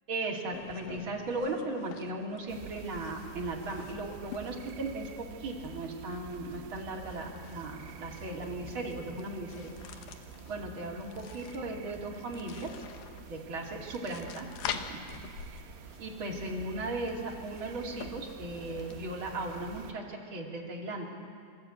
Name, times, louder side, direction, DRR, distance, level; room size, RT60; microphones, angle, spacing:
voice 1, 0.1-10.1 10.5-12.7 13.3-14.5 14.7-15.0 16.0-21.1, right 2 dB, 35° right, -2 dB, 2.8 m, -37 dB
sound 1, 0.5-20.0, left 8 dB, 70° left, 2.2 m, -47 dB
sound 2, 2.5-19.9, right 8 dB, 85° right, 3.1 m, -49 dB
24.5 x 13.5 x 8.7 m, 2.5 s
omnidirectional pair, 5.1 m